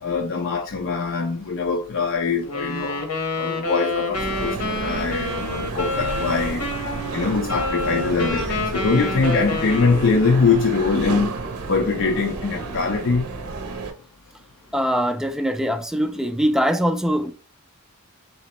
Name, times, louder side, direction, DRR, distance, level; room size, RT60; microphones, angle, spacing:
voice 1, 0.0-3.0 3.4-6.7 7.1-11.3 11.7-13.3, left 4 dB, 55° left, 0.5 m, -22 dB
Wind instrument woodwind instrument, 2.4-10.4, left 2 dB, 85° left, 1.1 m, -28 dB
sound 1, 4.1-13.9, right 3 dB, 75° right, 0.7 m, -31 dB
voice 2, 14.7-17.3, equal, ahead, 0.3 m, -22 dB
4.1 x 3.1 x 2.9 m
head